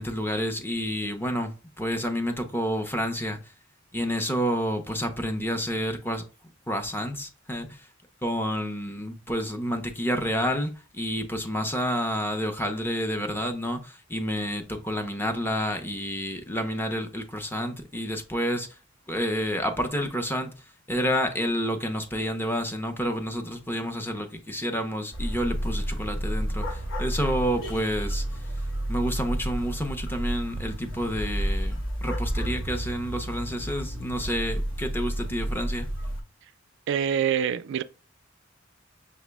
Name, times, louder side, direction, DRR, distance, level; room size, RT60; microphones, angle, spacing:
voice 1, 0.0-3.4 3.9-6.2 6.7-7.9 8.2-18.7 19.1-20.5 20.9-28.2 28.9-35.9, equal, 10° left, 0.5 m, -29 dB
sound 1, 25.1-36.2, right 1 dB, 75° left, 0.9 m, -31 dB
voice 2, 36.9-37.8, right 8 dB, 60° right, 0.3 m, -25 dB
5.7 x 2.0 x 3.3 m
head